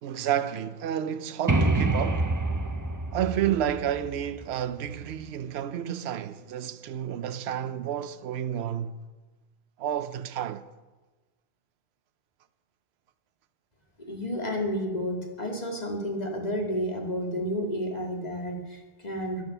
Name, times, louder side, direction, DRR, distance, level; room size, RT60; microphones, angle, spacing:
voice 1, 0.0-2.4 3.1-9.0 9.8-10.7, right 10 dB, 75° right, 0.9 m, -30 dB
sound 1, 1.5-5.1, right 2 dB, 20° right, 0.7 m, -27 dB
voice 2, 14.1-19.4, equal, 40° left, 2.4 m, -31 dB
13.5 x 10.5 x 5.8 m
omnidirectional pair, 1.1 m